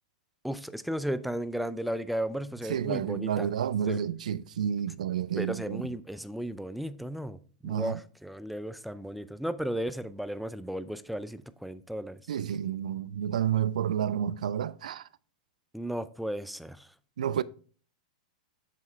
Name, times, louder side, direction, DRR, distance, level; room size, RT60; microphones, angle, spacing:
voice 1, 0.4-3.5 3.9-4.0 5.4-7.4 7.6-12.2 15.7-16.9, equal, ahead, 0.4 m, -34 dB
voice 2, 2.7-5.8 7.6-8.0 12.3-15.1 17.2-17.4, right 9 dB, 75° right, 0.4 m, -30 dB
7.4 x 5.6 x 3.3 m
hypercardioid pair, 105°, 4 cm